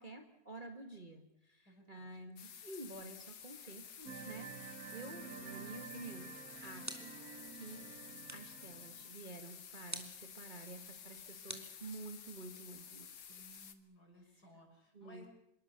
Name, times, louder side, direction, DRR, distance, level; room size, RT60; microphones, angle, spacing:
voice 1, 0.0-6.3 6.6-7.1 7.5-7.8 8.3-13.4 14.9-15.2, right 2 dB, 25° right, 5 dB, 1.9 m, -50 dB
voice 2, 1.6-2.1 13.3-15.3, equal, 50° left, 2 dB, 6.8 m, -61 dB
sound 1, 2.4-13.7, left 7 dB, 65° left, 2.2 m, -52 dB
sound 2, 4.0-9.1, right 6 dB, 50° right, 1.6 m, -50 dB
sound 3, 6.8-7.4 8.3-8.6 9.9-10.3 11.5-12.4, right 1 dB, 10° right, 2.8 m, -48 dB
26.5 x 23.0 x 6.8 m, 0.81 s
omnidirectional pair, 2.2 m